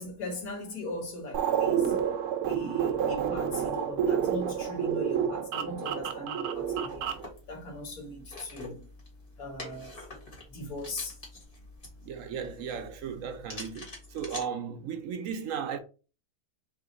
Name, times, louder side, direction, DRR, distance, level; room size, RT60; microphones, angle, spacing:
voice 1, 0.0-1.9 2.5-7.1 7.5-8.9 9.4-10.0 10.5-11.2, left 2 dB, 75° left, 1.9 m, -39 dB
sound 1, 1.3-7.3, right 8 dB, 90° right, 1.2 m, -29 dB
sound 2, 6.5-14.4, left 2 dB, 35° left, 1.8 m, -47 dB
voice 2, 12.0-15.8, right 7 dB, 70° right, 0.9 m, -36 dB
3.6 x 3.4 x 3.9 m
omnidirectional pair, 1.6 m